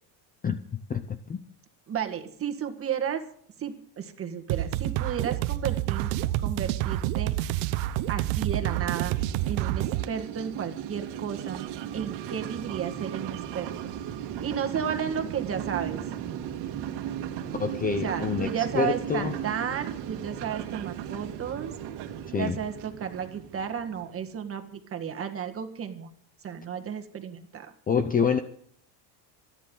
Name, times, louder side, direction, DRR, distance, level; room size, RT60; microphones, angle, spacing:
voice 1, 0.9-1.4 17.6-19.3 22.3-22.6 27.9-28.4, left 6 dB, 20° left, 9 dB, 0.6 m, -27 dB
voice 2, 1.9-3.2 3.6-6.1 6.4-7.3 8.1-9.2 9.5-11.7 11.9-13.9 14.4-16.0 17.9-21.7 22.4-26.1 26.4-27.7, right 8 dB, 30° right, 6 dB, 1.7 m, -33 dB
sound 1, 4.5-10.1, right 14 dB, 80° right, 0.9 m, -28 dB
sound 2, 7.6-24.3, right 10 dB, 60° right, 1.8 m, -37 dB
27.5 x 10.0 x 3.9 m, 0.62 s
cardioid pair, 155°, 45 cm